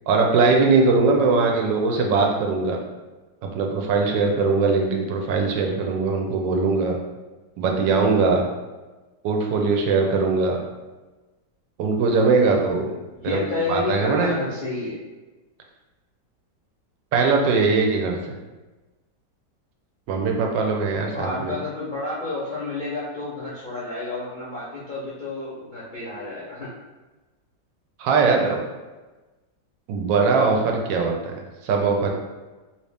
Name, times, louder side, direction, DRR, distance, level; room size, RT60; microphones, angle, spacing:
voice 1, 0.1-2.8 3.5-7.0 7.6-8.4 9.2-10.6 11.8-12.9 13.2-13.4 13.7-14.5 17.1-18.2 20.1-21.5 28.0-28.6 29.9-32.1, right 4 dB, 85° right, 2 dB, 1.3 m, -21 dB
voice 2, 1.0-1.6 13.2-15.0 20.9-26.7, left 2 dB, 55° left, -9 dB, 0.5 m, -30 dB
3.1 x 2.8 x 3.3 m, 1.2 s
omnidirectional pair, 1.9 m